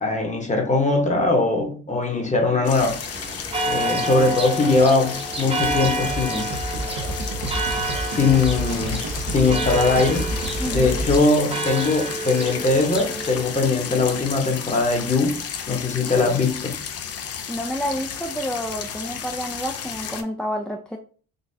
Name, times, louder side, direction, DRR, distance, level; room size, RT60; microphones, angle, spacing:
voice 1, 0.0-3.2 3.7-6.5 8.2-10.3 10.7-15.4 15.7-16.8, left 3 dB, 25° left, 2 dB, 1.0 m, -21 dB
sound 1, 2.6-20.2, left 7 dB, 55° left, 0.5 m, -33 dB
Church bell, 2.7-13.4, right 2 dB, 20° right, 0.8 m, -29 dB
sound 2, 5.6-11.2, right 1 dB, 85° right, 0.7 m, -29 dB
voice 2, 10.6-11.0 17.5-21.0, equal, 5° left, 1 dB, 0.3 m, -29 dB
3.8 x 2.4 x 2.7 m, 0.41 s
cardioid pair, 90°, 30 cm